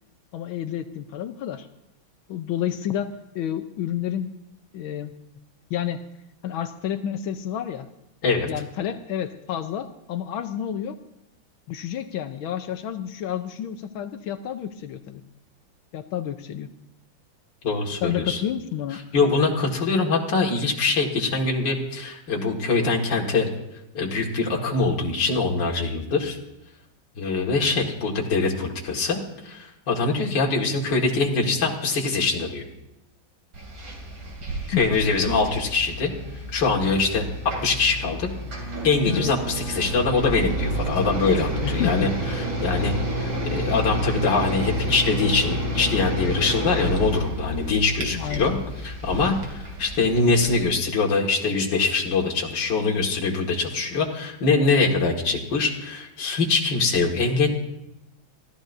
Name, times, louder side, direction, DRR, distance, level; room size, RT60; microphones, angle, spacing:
voice 1, 0.3-1.7 2.3-4.4 4.7-5.1 5.7-6.0 6.4-7.9 8.4-11.0 11.7-15.2 15.9-16.7 18.0-19.0 34.7-34.9 39.1-39.3 41.6-42.1 48.1-48.6, left 10 dB, 80° left, 8 dB, 1.6 m, -30 dB
voice 2, 17.6-18.4 19.1-23.5 23.9-26.4 27.2-32.6 34.7-36.1 36.5-38.3 38.8-48.6 48.8-57.5, left 4 dB, 60° left, -1 dB, 2.6 m, -23 dB
sound 1, 33.5-50.6, right 1 dB, 65° right, 3.8 m, -30 dB
25.0 x 15.5 x 2.7 m, 0.89 s
omnidirectional pair, 2.3 m